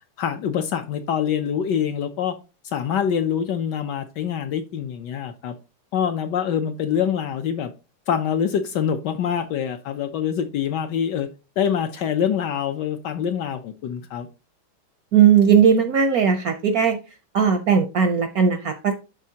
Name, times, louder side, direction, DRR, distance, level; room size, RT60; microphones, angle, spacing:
voice 1, 0.2-2.3 2.6-5.6 5.9-7.7 8.1-11.3 11.6-14.3, left 8 dB, 70° left, 1.1 m, -25 dB
voice 2, 15.1-17.0 17.3-18.9, right 7 dB, 70° right, 0.9 m, -17 dB
12.0 x 4.1 x 2.8 m
omnidirectional pair, 2.2 m